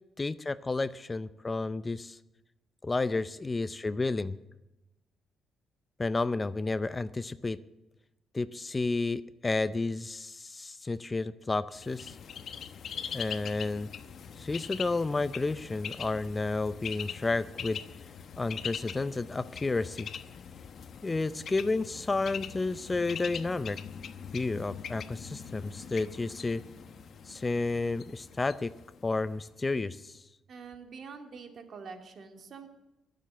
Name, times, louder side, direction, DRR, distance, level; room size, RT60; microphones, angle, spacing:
voice 1, 0.2-2.2 2.8-4.4 6.0-7.6 8.3-12.2 13.1-13.9 14.4-17.8 18.4-20.1 21.0-23.8 24.3-26.6 27.3-28.7 29.0-30.2, left 3 dB, 25° left, 15 dB, 0.5 m, -31 dB
Bird, 11.7-29.5, left 7 dB, 60° left, 1.0 m, -42 dB
voice 2, 30.5-32.7, right 5 dB, 55° right, 5 dB, 2.4 m, -45 dB
21.5 x 7.5 x 7.8 m, 0.96 s
cardioid pair, 90°, 0 cm